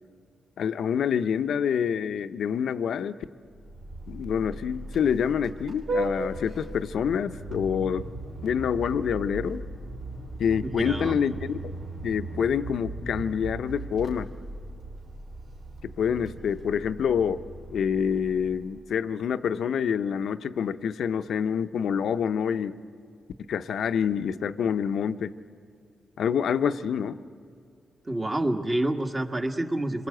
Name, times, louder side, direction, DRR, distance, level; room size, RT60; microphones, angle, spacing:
voice 1, 0.6-3.1 4.1-8.0 8.4-9.6 10.4-11.7 12.0-14.3 16.0-17.4 17.7-22.8 23.5-25.3 26.2-27.2, left 7 dB, 75° left, 11 dB, 0.7 m, -27 dB
Vehicle horn car horn honking, 3.5-18.9, right 2 dB, 70° right, 3.2 m, -37 dB
voice 2, 10.6-11.2 28.1-30.1, right 1 dB, 25° right, 5 dB, 1.7 m, -28 dB
28.0 x 22.0 x 7.9 m, 2.3 s
cardioid pair, 80°, 0 cm